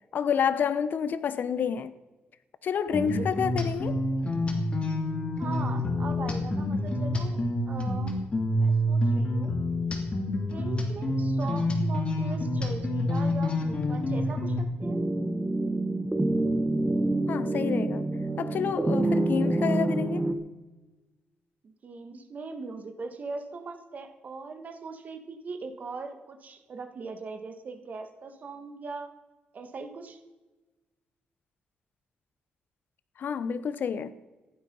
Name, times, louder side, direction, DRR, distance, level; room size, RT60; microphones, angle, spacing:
voice 1, 0.1-1.9 2.6-4.0 17.3-18.0 18.4-20.3 33.2-34.1, left 7 dB, 60° left, 0.9 m, -29 dB
sound 1, 2.9-14.6, left 1 dB, 30° left, 2.5 m, -28 dB
voice 2, 2.9-3.3 5.4-7.4 7.7-8.2 8.5-9.5 10.5-15.0 21.6-29.1 29.5-30.2, right 4 dB, 45° right, 1.6 m, -40 dB
sound 2, 14.8-20.3, right 2 dB, 15° right, 1.0 m, -27 dB
15.0 x 11.5 x 5.5 m
cardioid pair, 130°, 4 cm